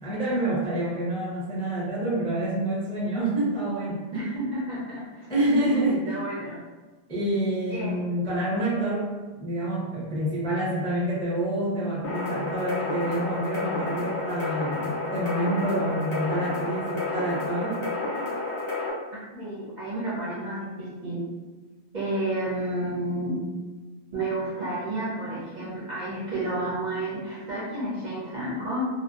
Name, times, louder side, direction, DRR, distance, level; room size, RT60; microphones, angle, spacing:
voice 1, 0.0-4.3 5.3-6.0 7.1-9.1 9.4-17.8, right 1 dB, 5° left, -7 dB, 0.4 m, -27 dB
voice 2, 4.1-6.6 7.7-8.0 19.3-21.3 21.9-23.5 24.1-28.9, right 1 dB, 50° right, -8 dB, 0.6 m, -31 dB
sound 1, 12.0-18.9, left 2 dB, 75° left, 0.9 m, -30 dB
2.6 x 2.0 x 2.4 m, 1.3 s
omnidirectional pair, 1.2 m